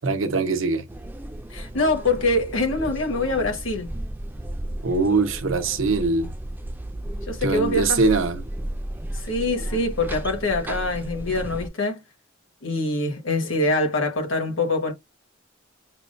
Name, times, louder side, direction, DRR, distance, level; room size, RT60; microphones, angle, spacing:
voice 1, 0.0-0.8 4.8-6.3 7.4-8.4, right 3 dB, 85° right, 0.7 m, -22 dB
sound 1, 0.9-11.7, right 1 dB, 10° right, 0.4 m, -34 dB
voice 2, 1.5-3.9 7.3-8.0 9.2-12.0 12.6-14.9, left 2 dB, 75° left, 1.4 m, -24 dB
5.9 x 2.1 x 2.5 m
head